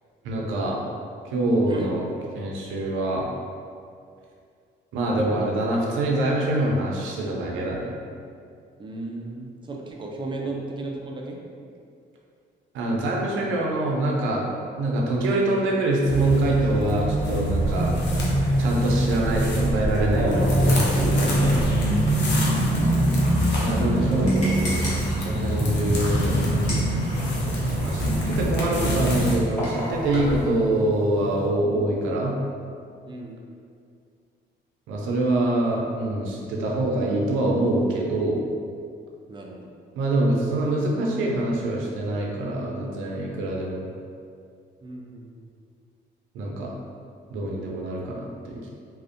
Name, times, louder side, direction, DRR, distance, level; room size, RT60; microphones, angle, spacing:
voice 1, 0.2-0.8 1.2-2.1 2.3-3.3 4.9-7.9 10.4-10.5 12.7-14.4 14.8-18.0 18.6-21.6 23.5-24.8 25.3-32.4 34.9-38.4 40.0-43.9 46.3-46.7 47.3-48.7, right 1 dB, 85° right, -2 dB, 0.4 m, -25 dB
voice 2, 8.8-11.4 22.3-23.2 27.9-28.2 33.1-33.4 39.3-39.7 40.1-40.2 44.8-45.4, right 2 dB, 25° right, 0 dB, 0.3 m, -36 dB
sound 1, 16.0-29.4, equal, 60° left, 0.6 m, -23 dB
sound 2, 20.1-31.5, equal, 10° left, 0.7 m, -33 dB
sound 3, 21.4-30.4, equal, 35° left, 0.9 m, -37 dB
2.4 x 2.1 x 2.5 m, 2.3 s
cardioid pair, 90°, 20 cm